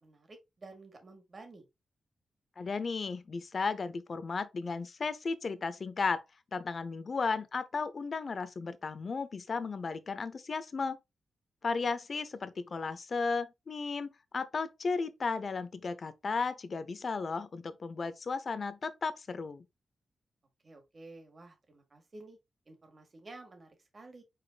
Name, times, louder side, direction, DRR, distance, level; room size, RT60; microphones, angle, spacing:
voice 1, 0.0-1.6 12.6-12.7 20.6-22.4 22.7-24.2, right 2 dB, 45° right, 1.7 m, -52 dB
voice 2, 2.6-6.2 6.5-11.0 11.6-19.7, left 4 dB, 55° left, 0.6 m, -34 dB
5.0 x 4.3 x 2.3 m
cardioid pair, 65°, 0 cm